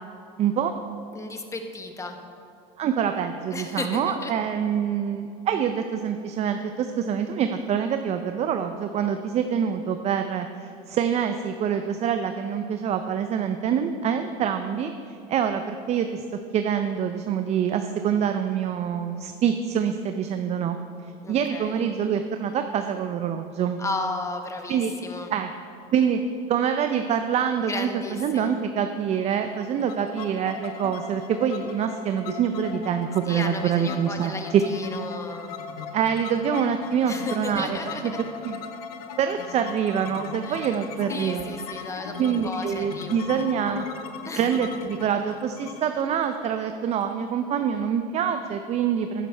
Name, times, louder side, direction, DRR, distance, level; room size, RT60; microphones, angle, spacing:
voice 1, 0.4-0.7 2.8-16.2 16.5-20.8 21.3-23.8 24.7-24.9 25.3-25.5 25.9-26.2 26.5-34.6 35.9-37.8 38.0-38.1 38.4-38.6 39.2-41.8 42.2-43.9 44.4-49.3, right 8 dB, 35° right, 7 dB, 0.5 m, -25 dB
voice 2, 1.1-2.2 3.5-4.3 21.2-21.8 23.8-25.3 27.7-28.5 33.3-35.5 37.0-38.0 40.4-40.7 41.1-43.5 44.2-44.5, left 3 dB, 15° left, 5 dB, 1.0 m, -34 dB
sound 1, 29.3-47.0, left 7 dB, 85° left, 0.9 m, -38 dB
11.5 x 9.9 x 3.4 m, 2.6 s
supercardioid pair, 105°, 19 cm